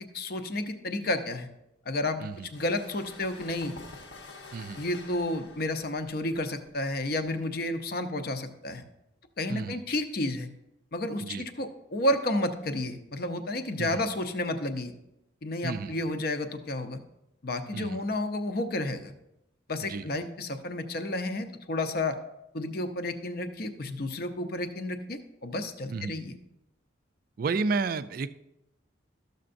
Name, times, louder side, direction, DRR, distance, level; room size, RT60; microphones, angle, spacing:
voice 1, 0.1-1.5 1.9-2.2 2.5-3.7 4.8-8.8 9.4-10.5 10.9-14.9 15.4-17.0 17.4-19.1 19.7-22.2 22.5-26.4, left 1 dB, 50° left, 8 dB, 0.7 m, -31 dB
sound 1, 2.3-7.8, left 3 dB, 85° left, 1.1 m, -48 dB
voice 2, 4.5-4.8 9.5-9.8 11.2-11.4 13.8-14.0 15.6-16.0 17.7-18.0 19.8-20.1 25.9-26.2 27.4-28.3, right 4 dB, 50° right, 13 dB, 0.3 m, -32 dB
13.0 x 6.6 x 2.6 m, 0.86 s
head